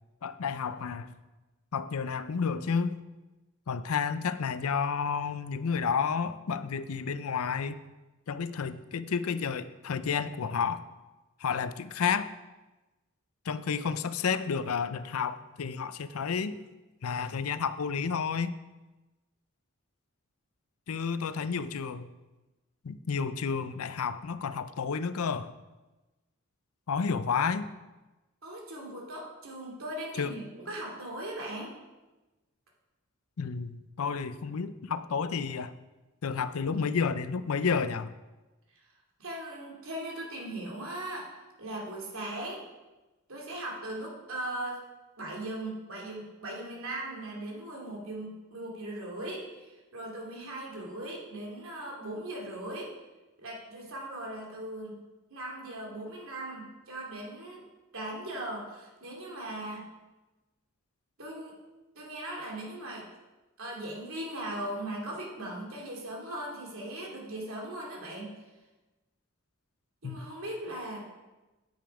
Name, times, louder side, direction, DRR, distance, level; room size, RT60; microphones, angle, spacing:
voice 1, 0.2-1.1 1.7-3.0 3.7-7.8 8.3-10.8 11.4-12.3 13.4-16.6 17.0-18.5 20.9-22.1 22.8-25.5 26.9-27.7 30.2-30.3 33.4-35.7 36.2-38.1 70.0-70.2, left 6 dB, 85° left, 13 dB, 0.5 m, -31 dB
voice 2, 28.4-31.7 39.2-42.6 43.3-44.8 45.2-52.9 53.4-55.0 55.3-57.6 57.9-59.9 61.2-61.6 61.9-63.1 63.6-68.4 70.0-71.1, right 1 dB, 70° right, -2 dB, 2.8 m, -39 dB
9.2 x 8.9 x 4.9 m, 1.1 s
head